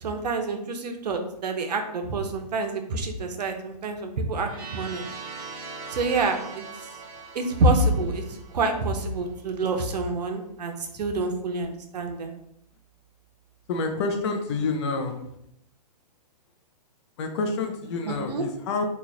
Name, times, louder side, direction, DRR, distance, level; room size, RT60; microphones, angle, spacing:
voice 1, 0.0-5.0 5.9-6.6 7.3-8.2 8.5-12.3 18.1-18.4, right 2 dB, 75° right, 5 dB, 0.7 m, -27 dB
sound 1, 4.4-9.3, right 4 dB, 35° right, 0.7 m, -41 dB
voice 2, 13.7-15.2 17.2-18.9, left 3 dB, 40° left, 5 dB, 0.5 m, -28 dB
3.1 x 2.3 x 3.8 m, 0.75 s
hypercardioid pair, 145°, 21 cm